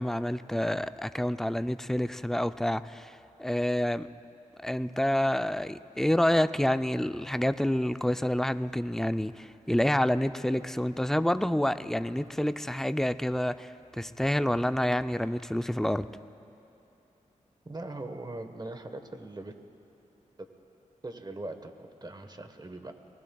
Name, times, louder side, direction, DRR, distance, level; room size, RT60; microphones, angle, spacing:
voice 1, 0.0-4.1 4.6-16.1, left 1 dB, 5° left, 0.5 m, -28 dB
voice 2, 17.6-19.5 20.4-20.5 21.0-22.9, right 2 dB, 30° right, 1.3 m, -40 dB
28.5 x 20.0 x 2.4 m
cardioid pair, 55°, 14 cm